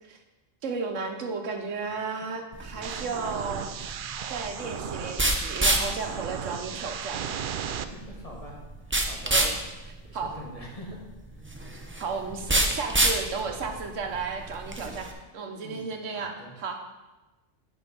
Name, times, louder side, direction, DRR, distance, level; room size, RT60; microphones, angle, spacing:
voice 1, 0.6-3.9 4.3-7.3 9.3-9.6 9.8-10.4 12.0-16.8, right 4 dB, 90° right, 4 dB, 1.3 m, -34 dB
sound 1, 2.5-15.1, right 2 dB, 15° right, 0.5 m, -29 dB
sound 2, 2.8-7.8, right 8 dB, 60° right, 0.5 m, -35 dB
voice 2, 7.9-8.6 8.8-9.3 10.0-11.0 15.6-15.9 16.1-16.5, equal, 30° left, -1 dB, 1.4 m, -44 dB
8.7 x 5.0 x 5.2 m, 1.1 s
omnidirectional pair, 1.3 m